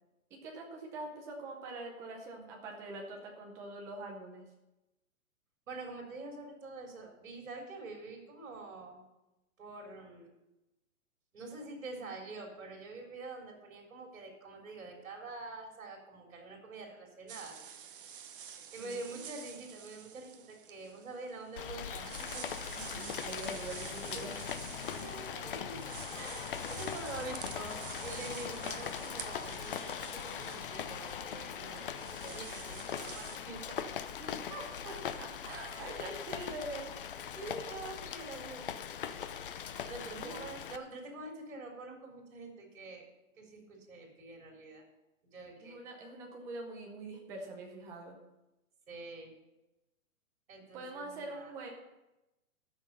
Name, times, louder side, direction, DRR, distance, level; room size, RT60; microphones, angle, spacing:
voice 1, 0.3-4.4 18.8-19.3 22.7-24.4 25.4-25.7 34.2-37.0 40.1-40.4 45.6-48.2 50.7-51.7, right 2 dB, 5° right, 0 dB, 0.6 m, -44 dB
voice 2, 5.7-9.0 9.6-10.3 11.3-17.6 18.7-22.4 24.9-33.9 35.7-36.0 37.4-38.7 39.8-43.1 43.4-44.8 45.3-45.8 48.9-49.3 50.5-51.5, right 3 dB, 70° right, 1 dB, 3.8 m, -46 dB
sound 1, 17.3-33.4, right 8 dB, 40° right, 0.9 m, -49 dB
Rain, 21.6-40.8, left 8 dB, 40° left, 0.6 m, -41 dB
13.0 x 6.3 x 6.8 m, 0.99 s
hypercardioid pair, 165°, 42 cm